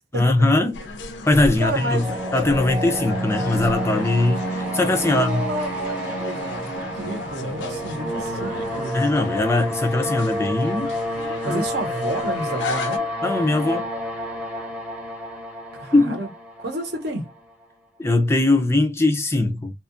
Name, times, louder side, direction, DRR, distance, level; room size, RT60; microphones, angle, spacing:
voice 1, 0.1-0.8 1.3-2.0 2.3-5.5 8.9-10.9 11.5-11.6 13.2-13.9 15.9-16.2 18.0-19.7, left 2 dB, 15° left, 0.3 m, -20 dB
sound 1, 0.7-13.0, left 3 dB, 80° left, 0.4 m, -35 dB
sound 2, 1.6-17.4, equal, 5° right, 0.7 m, -29 dB
voice 2, 1.6-2.3 5.0-9.0 11.4-13.1 15.7-16.3 16.6-17.3, right 1 dB, 65° right, 0.8 m, -30 dB
2.7 x 2.3 x 2.4 m
head